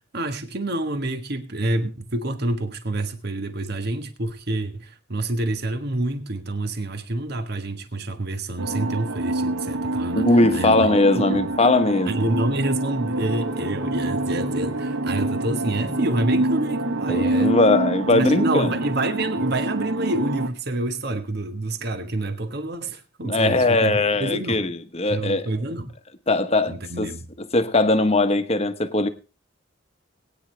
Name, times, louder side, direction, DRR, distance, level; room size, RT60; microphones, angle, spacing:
voice 1, 0.1-10.8 11.1-11.5 12.1-17.5 18.1-24.6 25.1-25.9 26.7-27.3, right 2 dB, 55° right, 1.5 m, -28 dB
sound 1, 8.6-20.5, right 2 dB, 85° right, 0.9 m, -26 dB
voice 2, 10.2-12.1 17.1-18.7 23.2-25.5 26.3-27.1 27.5-29.1, left 2 dB, 30° left, 1.1 m, -20 dB
sound 2, 13.2-18.2, equal, 15° right, 2.7 m, -38 dB
21.5 x 9.6 x 3.3 m
head